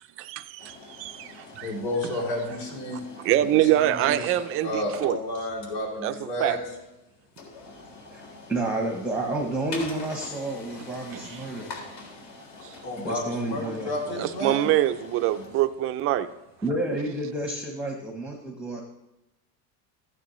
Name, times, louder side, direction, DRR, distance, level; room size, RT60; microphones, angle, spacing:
voice 1, 0.2-1.7 2.0-2.1 3.2-5.2 6.0-6.1 6.4-6.6 11.1-11.4 12.6-12.8 14.2-16.3 16.9-17.0, right 13 dB, 30° right, 10 dB, 0.4 m, -25 dB
sound 1, 0.6-17.4, left 3 dB, 60° left, 3.5 m, -46 dB
voice 2, 1.6-4.3 4.6-6.6 12.8-14.7, left 1 dB, 85° left, -1 dB, 3.2 m, -32 dB
voice 3, 8.5-11.7 13.0-14.2 16.6-18.8, right 1 dB, 5° right, 1 dB, 0.8 m, -30 dB
14.5 x 9.7 x 3.1 m, 0.95 s
supercardioid pair, 145°, 46 cm